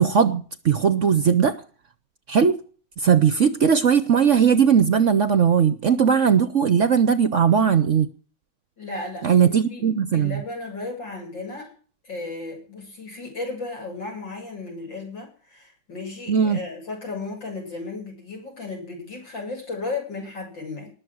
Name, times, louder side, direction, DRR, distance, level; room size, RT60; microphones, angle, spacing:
voice 1, 0.0-1.5 2.3-2.5 3.0-8.1 9.2-10.4 16.3-16.6, right 7 dB, 55° right, 0.9 m, -18 dB
voice 2, 8.8-11.7 12.0-20.9, left 3 dB, 80° left, 7.9 m, -35 dB
20.0 x 7.3 x 6.2 m
omnidirectional pair, 2.0 m